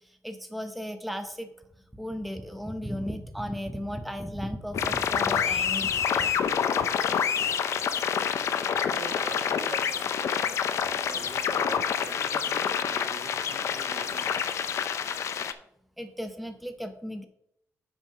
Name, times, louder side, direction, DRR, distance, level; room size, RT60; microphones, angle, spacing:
voice 1, 0.2-1.5 1.9-6.4 16.0-17.2, equal, ahead, 7 dB, 0.6 m, -35 dB
sound 1, 4.7-15.5, left 7 dB, 60° left, 0.5 m, -27 dB
voice 2, 8.9-10.5 11.0-14.4, right 4 dB, 85° right, 2 dB, 1.9 m, -43 dB
7.4 x 5.1 x 5.6 m, 0.76 s
wide cardioid pair, 175°, 6 cm